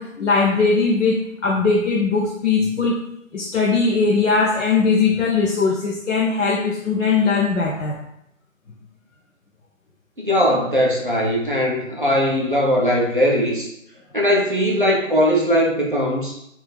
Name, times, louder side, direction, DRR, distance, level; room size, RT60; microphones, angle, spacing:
voice 1, 0.0-3.0 3.3-8.0, left 4 dB, 65° left, -3 dB, 0.5 m, -20 dB
voice 2, 10.2-13.7 14.1-16.4, equal, 40° right, -3 dB, 0.4 m, -19 dB
2.3 x 2.1 x 3.3 m, 0.77 s
figure-of-eight pair, 175°, 40 cm